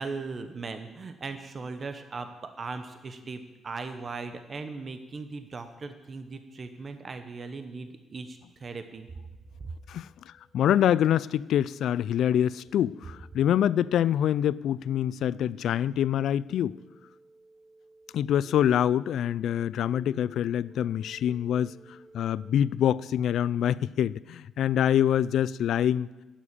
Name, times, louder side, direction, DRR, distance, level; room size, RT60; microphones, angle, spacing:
voice 1, 0.0-9.1 9.6-9.7, right 4 dB, 40° right, 0.9 m, -38 dB
sound 1, 9.3-22.4, left 2 dB, ahead, 4.7 m, -54 dB
voice 2, 9.9-16.8 18.1-21.8 22.1-26.1, left 10 dB, 75° left, 0.3 m, -25 dB
11.0 x 7.5 x 8.4 m
cardioid pair, 90°, 0 cm